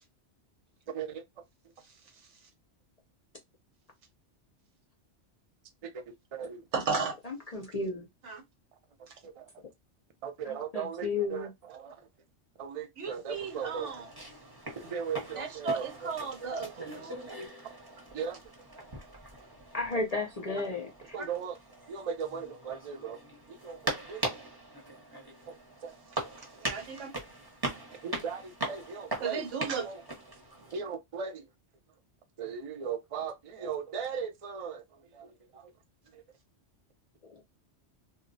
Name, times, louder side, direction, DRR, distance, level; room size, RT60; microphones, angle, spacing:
voice 1, 0.9-1.2 5.8-6.0 6.3-6.6 9.2-9.5 10.2-12.0 12.6-13.9 14.8-16.1 16.4-16.8 17.4-17.5 18.1-18.4 21.1-21.6 21.9-23.2 23.5-24.2 25.5-25.6 25.8-25.9 28.0-29.4 29.8-30.0 30.7-31.4 32.4-34.8 35.1-35.7 36.1-36.2, right 6 dB, 50° right, 0.4 m, -38 dB
voice 2, 6.7-7.1 8.2-8.4 9.1-9.2 13.0-14.1 15.3-17.4 21.2-21.3 26.1-27.1 29.2-29.9, right 5 dB, 85° right, 1.2 m, -35 dB
voice 3, 7.3-8.1 10.5-11.5 14.8-14.9 19.7-21.2, left 3 dB, 45° left, 0.5 m, -33 dB
sound 1, 13.3-30.8, right 2 dB, 20° right, 0.8 m, -41 dB
2.2 x 2.1 x 3.8 m
omnidirectional pair, 1.2 m